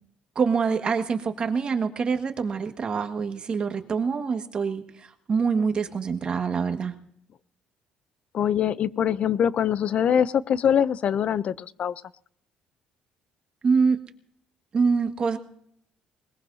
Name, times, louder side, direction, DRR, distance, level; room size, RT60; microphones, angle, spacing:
voice 1, 0.3-6.9 13.6-14.0 14.7-15.4, right 5 dB, 35° right, 6 dB, 1.7 m, -25 dB
voice 2, 8.3-11.9, left 9 dB, 50° left, 18 dB, 0.6 m, -23 dB
21.0 x 21.0 x 2.8 m, 0.69 s
cardioid pair, 120°, 3 cm